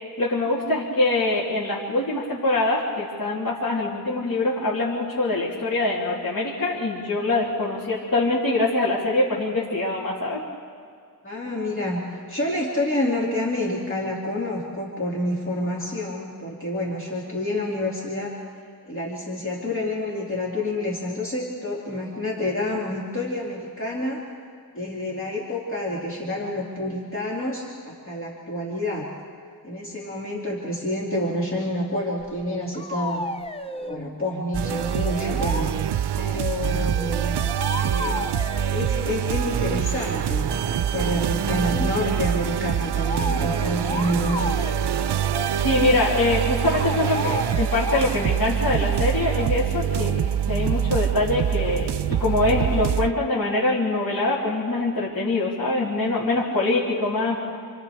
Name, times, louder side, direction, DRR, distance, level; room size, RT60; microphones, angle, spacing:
voice 1, 0.2-10.4 45.6-57.4, left 2 dB, 55° left, -7 dB, 3.0 m, -24 dB
voice 2, 11.2-18.4 18.8-24.2 24.7-29.1 29.6-33.3 33.7-35.8 36.2-37.3 37.8-38.2 38.7-44.4, left 1 dB, 30° left, -5 dB, 2.5 m, -28 dB
sound 1, 32.2-32.3 32.7-34.0 34.6-35.7 36.9-39.1 43.0-48.1, left 2 dB, 15° left, 0.7 m, -33 dB
sound 2, 34.5-53.1, right 9 dB, 85° right, 0.5 m, -25 dB
28.5 x 28.0 x 3.4 m, 2.2 s
wide cardioid pair, 130°, 40 cm